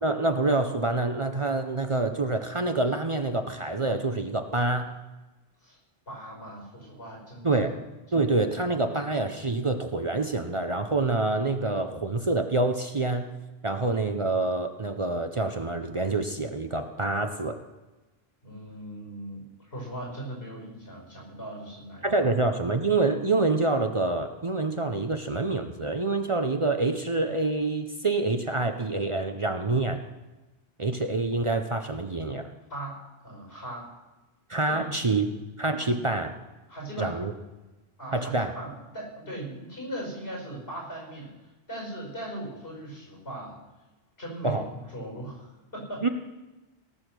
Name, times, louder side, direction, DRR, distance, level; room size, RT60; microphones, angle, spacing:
voice 1, 0.0-4.9 7.4-7.8 8.1-13.3 13.6-17.6 22.0-30.0 30.8-32.5 34.5-35.3 35.6-36.3 37.0-37.3 38.1-38.5 44.4-44.6 46.0-46.1, right 3 dB, 35° right, 6 dB, 0.7 m, -26 dB
voice 2, 6.1-7.7 8.1-8.3 18.4-22.3 32.7-33.9 34.7-34.9 36.7-37.2 38.0-43.6 44.2-46.1, right 1 dB, 75° left, -1 dB, 5.2 m, -39 dB
18.0 x 7.1 x 6.2 m, 1.1 s
omnidirectional pair, 1.1 m